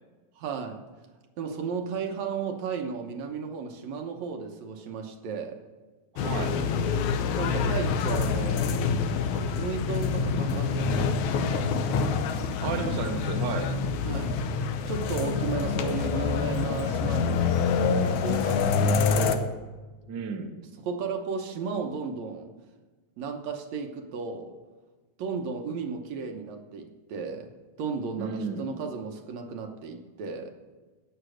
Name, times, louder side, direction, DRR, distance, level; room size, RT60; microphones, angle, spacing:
voice 1, 0.4-0.8 1.4-5.6 7.4-8.9 9.2-12.2 14.0-14.4 14.9-17.5 17.9-19.6 20.8-22.5 23.2-24.6 25.2-27.5 27.8-30.5, right 5 dB, 70° right, 5 dB, 2.2 m, -34 dB
voice 2, 6.1-6.6 12.6-13.7 20.1-20.5 28.2-28.7, right 5 dB, 55° right, 4 dB, 1.3 m, -32 dB
sound 1, 6.2-19.4, left 5 dB, 80° left, 2.2 m, -26 dB
11.5 x 8.8 x 6.2 m, 1.3 s
omnidirectional pair, 3.4 m